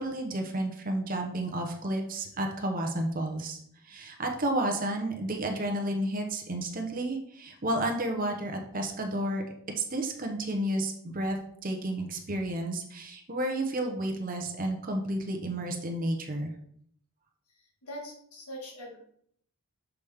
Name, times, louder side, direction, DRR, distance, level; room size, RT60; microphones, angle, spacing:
voice 1, 0.0-3.6 3.8-9.4 9.8-16.5, right 1 dB, 40° right, 3 dB, 0.8 m, -31 dB
voice 2, 17.8-19.0, equal, 90° left, 0 dB, 1.8 m, -42 dB
7.0 x 5.0 x 3.5 m, 0.68 s
head